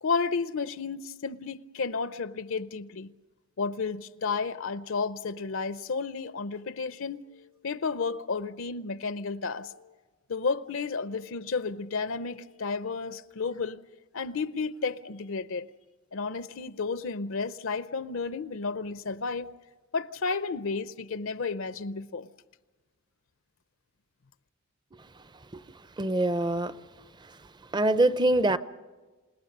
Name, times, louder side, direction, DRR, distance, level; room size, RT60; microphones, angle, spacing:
voice 1, 0.0-3.1 3.6-9.9 10.3-13.8 14.1-15.7 16.1-19.5 19.9-22.3, left 4 dB, 65° left, 0.6 m, -32 dB
voice 2, 24.9-26.8 27.2-28.6, right 2 dB, 20° right, 0.6 m, -27 dB
28.5 x 18.0 x 6.6 m
head